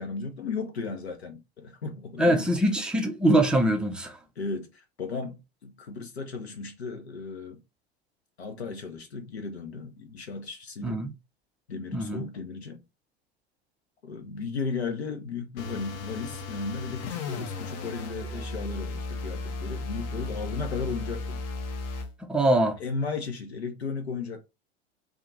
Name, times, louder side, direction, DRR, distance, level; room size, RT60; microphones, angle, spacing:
voice 1, 0.0-2.5 4.4-7.6 8.4-11.0 11.7-12.8 14.0-21.4 22.8-24.4, left 4 dB, 75° left, 0.8 m, -35 dB
voice 2, 2.2-4.2 10.8-11.1 11.9-12.3 22.3-22.8, right 1 dB, 5° right, 0.5 m, -23 dB
sound 1, 15.6-22.1, left 3 dB, 35° left, 0.7 m, -35 dB
2.7 x 2.4 x 3.8 m
figure-of-eight pair, 85°, 32 cm